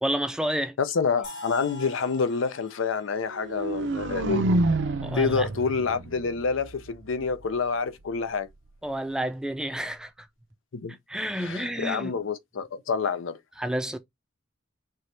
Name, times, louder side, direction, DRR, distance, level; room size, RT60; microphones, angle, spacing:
voice 1, 0.0-0.8 5.0-5.5 8.8-10.3 11.1-12.1 13.6-14.0, right 1 dB, 5° right, 0.5 m, -30 dB
voice 2, 0.8-4.5 5.1-8.5 10.7-11.0 11.4-13.4, left 5 dB, 80° left, 0.6 m, -27 dB
sound 1, 1.2-5.1, left 2 dB, 60° left, 2.8 m, -46 dB
sound 2, 3.3-7.3, right 2 dB, 65° right, 0.7 m, -28 dB
4.6 x 3.0 x 3.2 m
head